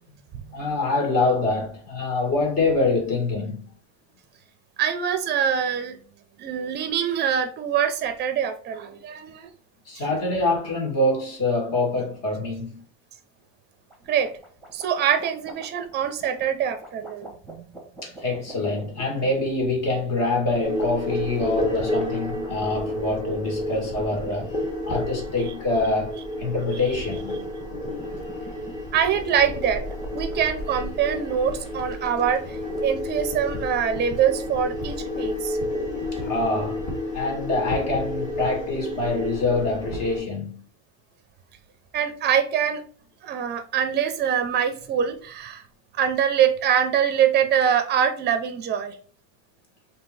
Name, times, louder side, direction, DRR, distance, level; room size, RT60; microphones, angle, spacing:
voice 1, 0.5-3.7 9.9-12.8 18.0-24.5 24.8-27.8 36.1-36.8 37.1-40.6, left 2 dB, 40° left, 1.8 m, -25 dB
voice 2, 4.8-6.0 6.4-9.5 14.1-14.3 14.7-17.8 18.5-18.6 28.9-29.8 30.1-35.6 41.9-42.8 43.2-45.6 45.9-49.0, right 8 dB, 25° right, 0.6 m, -24 dB
sound 1, 13.9-32.8, right 1 dB, ahead, 1.2 m, -45 dB
sound 2, 20.6-40.2, left 1 dB, 20° left, 1.4 m, -31 dB
3.7 x 2.9 x 4.1 m
cardioid pair, 160°, 38 cm